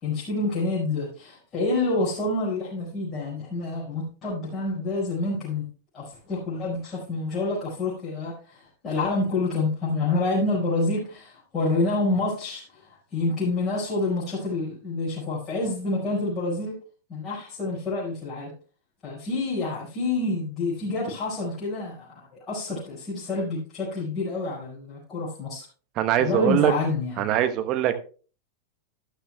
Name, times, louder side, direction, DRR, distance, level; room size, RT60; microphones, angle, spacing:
voice 1, 0.0-5.6 5.9-12.8 13.1-16.7 17.1-18.5 19.0-25.7 26.2-27.2, left 2 dB, 25° left, -8 dB, 5.2 m, -28 dB
voice 2, 26.0-26.7 27.2-27.9, right 12 dB, 40° right, 9 dB, 1.1 m, -22 dB
12.5 x 12.0 x 2.3 m, 0.38 s
figure-of-eight pair, 90°, 0 cm